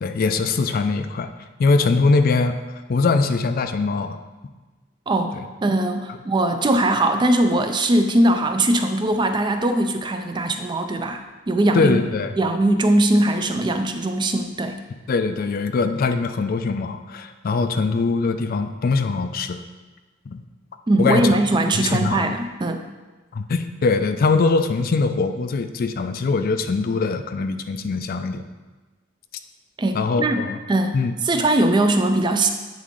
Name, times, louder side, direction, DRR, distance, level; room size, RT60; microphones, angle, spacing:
voice 1, 0.0-1.3 1.6-2.6 2.9-4.2 5.3-5.4 11.7-12.3 15.1-19.6 20.3-20.4 21.0-21.2 21.7-22.2 23.3-28.4 29.9-30.6 30.9-31.1, left 4 dB, 50° left, 8 dB, 0.4 m, -22 dB
voice 2, 5.1-12.0 12.4-14.8 20.9-22.9 29.8-32.5, right 1 dB, 25° right, 6 dB, 0.4 m, -20 dB
8.4 x 3.6 x 3.7 m, 1.2 s
head